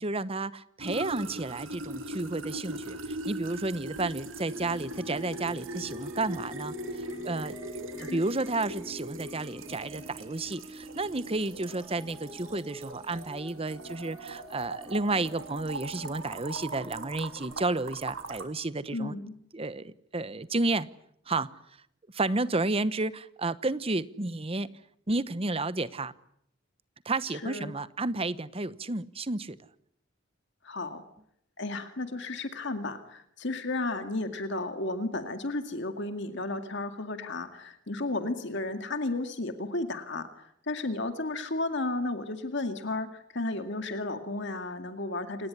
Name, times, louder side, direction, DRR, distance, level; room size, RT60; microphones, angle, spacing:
voice 1, 0.0-7.8 8.1-19.2 19.5-20.9 21.3-21.5 22.1-24.7 25.1-26.1 27.0-29.6, right 2 dB, 30° right, 15 dB, 1.0 m, -31 dB
sound 1, 0.8-18.5, right 2 dB, 85° right, 3.0 m, -40 dB
sound 2, 4.5-18.2, equal, 5° right, 6.8 m, -47 dB
voice 2, 18.9-19.3 27.3-27.7 30.6-31.0 31.6-45.5, left 2 dB, 65° left, 7 dB, 2.2 m, -33 dB
29.0 x 18.5 x 9.8 m, 0.74 s
head